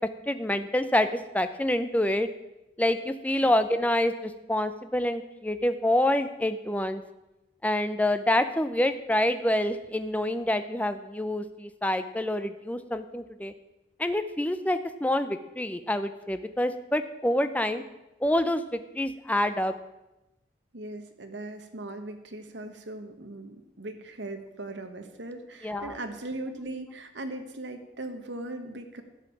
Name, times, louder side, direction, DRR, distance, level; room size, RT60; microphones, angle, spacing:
voice 1, 0.3-1.1 1.3-2.3 2.8-7.0 7.6-13.5 14.0-17.8 18.2-19.7 25.6-26.0, left 1 dB, 10° left, 10 dB, 0.6 m, -27 dB
voice 2, 20.7-29.0, right 2 dB, 70° right, 6 dB, 1.3 m, -39 dB
12.5 x 5.7 x 8.3 m, 0.95 s
head